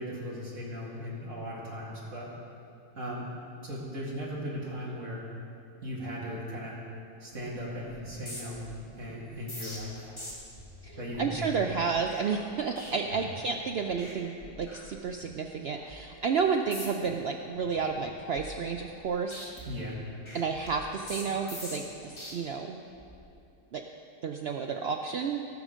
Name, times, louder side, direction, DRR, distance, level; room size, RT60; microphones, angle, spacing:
voice 1, 0.0-2.3 2.9-3.3 3.6-5.2 5.8-6.8 7.2-8.7 9.0-10.1 11.0-11.5 13.1-13.2 19.7-20.0, equal, 50° right, -5 dB, 2.5 m, -37 dB
sound 1, 7.3-7.6 7.9-13.6 13.9-14.1 14.4-15.4 15.8-16.0 16.6-17.1 17.5-19.0 19.3-22.3 22.9-23.2, left 1 dB, 20° left, 1.7 m, -45 dB
voice 2, 10.8-19.4 20.3-22.8 23.7-23.8 24.2-25.4, right 5 dB, 80° right, 3 dB, 0.5 m, -31 dB
16.5 x 6.2 x 5.1 m, 2.6 s
omnidirectional pair, 1.6 m